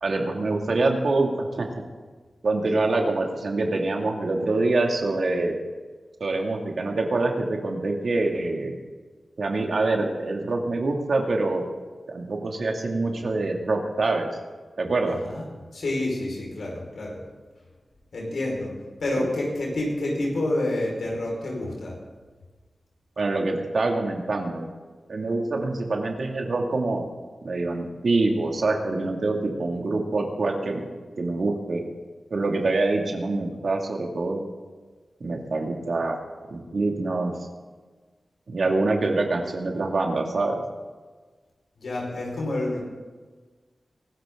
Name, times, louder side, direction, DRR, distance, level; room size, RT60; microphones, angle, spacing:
voice 1, 0.0-1.9 2.4-5.6 6.2-8.8 9.4-11.6 12.1-14.3 14.8-15.2 19.2-19.3 23.2-24.7 25.1-27.0 27.4-30.9 31.2-31.8 32.3-34.4 35.2-36.2 36.5-37.3 38.5-40.6, right 2 dB, 70° right, 2 dB, 2.4 m, -25 dB
voice 2, 15.1-15.4 15.7-17.2 18.1-18.7 19.0-22.0 41.8-42.8, left 1 dB, 85° left, -2 dB, 5.1 m, -28 dB
23.0 x 13.5 x 3.8 m, 1.4 s
cardioid pair, 60°, 0 cm